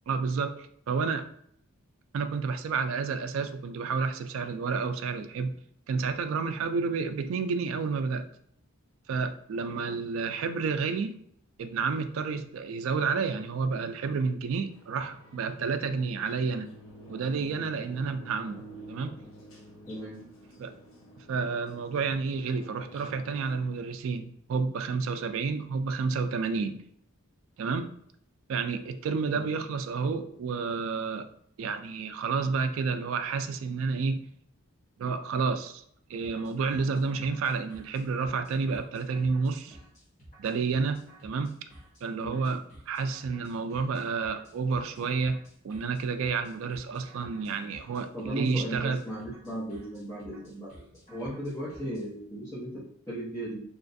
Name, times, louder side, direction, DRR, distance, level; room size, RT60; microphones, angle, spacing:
voice 1, 0.1-1.2 2.1-5.5 5.9-8.3 9.1-11.1 11.6-16.7 17.1-18.6 18.9-19.2 20.6-20.7 21.3-26.8 27.6-27.9 28.5-31.3 31.6-34.2 35.0-35.8 36.1-39.8 40.4-41.5 42.0-45.4 45.6-49.0, right 5 dB, 70° right, 8 dB, 0.3 m, -30 dB
sound 1, 14.6-23.6, right 1 dB, 70° left, 0.6 m, -49 dB
voice 2, 19.9-20.2 29.3-29.6 42.2-42.5 48.1-53.6, equal, 15° left, -10 dB, 0.7 m, -37 dB
sound 2, 36.2-52.0, right 1 dB, 35° left, 1.2 m, -53 dB
3.0 x 2.4 x 2.6 m, 0.66 s
head